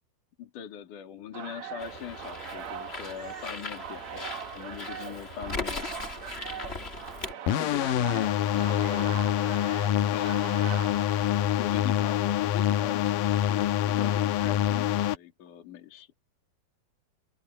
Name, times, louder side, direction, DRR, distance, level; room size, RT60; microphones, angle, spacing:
voice 1, 0.4-5.9 7.5-9.4 10.1-10.7 11.6-16.1, left 9 dB, 55° left, 3.6 m, -40 dB
sound 1, 1.3-11.8, right 9 dB, 60° right, 1.8 m, -41 dB
Bird, 1.8-7.3, left 3 dB, 30° left, 1.1 m, -39 dB
sound 2, 7.5-15.2, left 11 dB, 75° left, 2.1 m, -26 dB
omnidirectional pair, 4.8 m